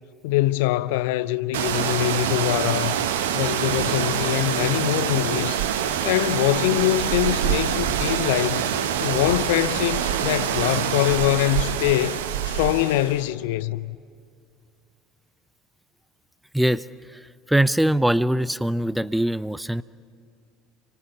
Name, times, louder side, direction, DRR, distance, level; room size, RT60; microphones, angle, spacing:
voice 1, 0.2-3.1 3.3-5.6 6.0-8.7 9.0-14.0, left 15 dB, 65° left, 0.5 m, -23 dB
sound 1, 1.5-13.2, right 9 dB, 70° right, 1.2 m, -25 dB
voice 2, 16.5-16.8 17.5-19.8, right 1 dB, 5° right, 0.6 m, -22 dB
30.0 x 24.0 x 7.1 m
figure-of-eight pair, 65°, 0 cm